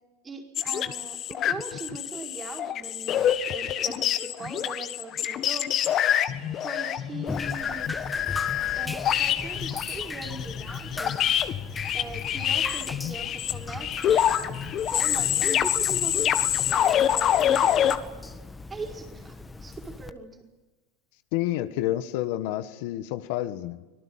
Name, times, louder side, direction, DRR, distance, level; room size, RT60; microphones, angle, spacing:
voice 1, 0.2-6.1 6.5-8.0 8.7-11.1 11.9-18.3 18.7-20.5, right 3 dB, 20° right, 2 dB, 4.9 m, -40 dB
sound 1, 0.6-18.0, left 10 dB, 40° left, 1.6 m, -26 dB
Drip, 7.3-20.1, left 3 dB, 10° left, 1.5 m, -38 dB
voice 2, 21.3-23.8, left 14 dB, 65° left, 10 dB, 1.6 m, -29 dB
25.5 x 19.0 x 8.8 m, 1.2 s
supercardioid pair, 135°, 0 cm